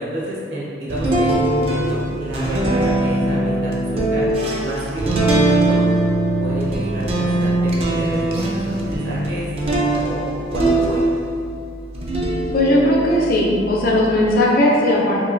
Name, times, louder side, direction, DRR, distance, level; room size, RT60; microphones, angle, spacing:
voice 1, 0.0-1.8 2.2-4.3 4.6-5.8 6.4-9.5 9.9-11.0, right 1 dB, 75° right, -6 dB, 0.8 m, -29 dB
sound 1, 0.9-11.5 11.9-14.3, right 2 dB, 35° right, 0.3 m, -21 dB
voice 2, 12.5-15.3, left 1 dB, 50° left, -3 dB, 0.5 m, -17 dB
2.9 x 2.7 x 2.5 m, 2.3 s
head